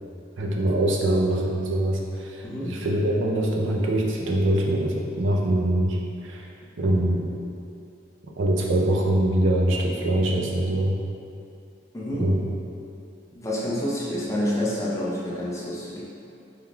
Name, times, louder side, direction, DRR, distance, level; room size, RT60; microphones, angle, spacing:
voice 1, 0.4-6.5 6.8-7.3 8.4-11.0 12.2-12.4, right 1 dB, 85° right, -1 dB, 0.5 m, -23 dB
voice 2, 2.4-2.8 11.9-12.3 13.3-16.0, left 1 dB, 15° left, -6 dB, 0.6 m, -28 dB
4.6 x 3.6 x 2.3 m, 2.6 s
head